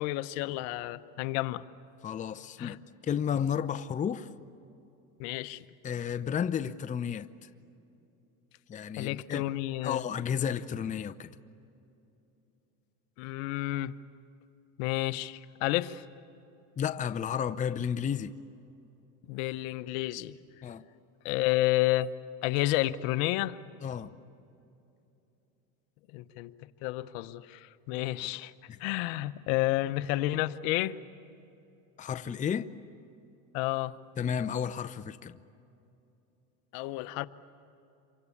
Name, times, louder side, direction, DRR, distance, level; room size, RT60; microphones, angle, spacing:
voice 1, 0.0-1.6 2.6-2.8 5.2-5.6 9.0-10.0 13.2-13.9 14.8-16.0 19.3-20.4 21.2-22.1 22.4-23.6 26.1-26.5 26.8-28.5 28.8-31.0 33.5-33.9 36.7-37.3, left 16 dB, 70° left, 1.0 m, -30 dB
voice 2, 2.0-2.8 3.0-4.3 5.8-7.3 8.7-9.5 9.8-11.3 16.8-18.3 20.6-20.8 23.8-24.1 32.0-32.7 34.2-35.3, left 8 dB, 20° left, 0.6 m, -32 dB
27.0 x 24.5 x 8.5 m
supercardioid pair, 115°, 41 cm